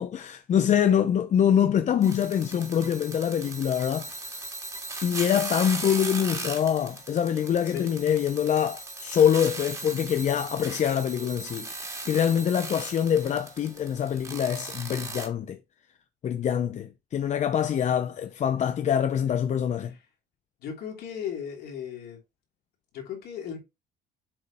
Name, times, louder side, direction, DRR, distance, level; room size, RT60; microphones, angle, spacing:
voice 1, 0.0-4.1 5.0-15.6 16.2-19.9, left 9 dB, 45° left, 0.6 m, -25 dB
sound 1, 2.0-15.3, right 2 dB, 20° right, 2.2 m, -38 dB
voice 2, 20.6-22.2 22.9-23.6, left 8 dB, 70° left, 3.2 m, -36 dB
7.8 x 3.3 x 4.3 m
cardioid pair, 110°, 17 cm